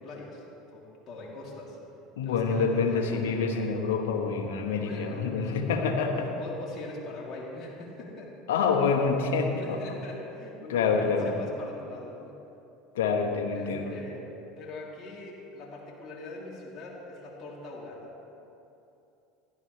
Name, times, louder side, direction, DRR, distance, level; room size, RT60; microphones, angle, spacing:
voice 1, 0.0-1.8 2.2-3.6 4.7-5.9 6.2-8.3 9.6-12.3 13.5-14.3 14.5-18.1, left 2 dB, 40° left, -5 dB, 3.1 m, -42 dB
voice 2, 2.2-6.3 8.5-9.8 10.7-11.3 12.9-13.9, left 5 dB, 80° left, 2 dB, 1.2 m, -27 dB
16.5 x 12.5 x 3.3 m, 2.8 s
hypercardioid pair, 80°, 0 cm